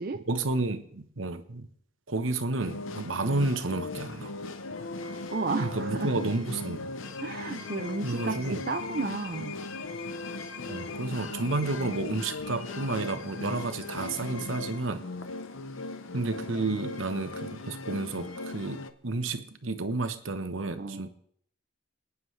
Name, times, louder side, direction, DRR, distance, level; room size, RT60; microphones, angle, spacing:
voice 1, 0.3-1.7 2.1-4.4 5.6-6.9 8.0-8.6 10.7-15.0 16.1-21.1, right 2 dB, 85° right, 9 dB, 1.0 m, -31 dB
sound 1, 2.6-18.9, left 3 dB, 85° left, 0.8 m, -38 dB
voice 2, 5.3-6.3 7.2-9.6 20.8-21.1, right 3 dB, 50° right, 6 dB, 0.5 m, -33 dB
28.5 x 9.7 x 3.2 m, 0.64 s
head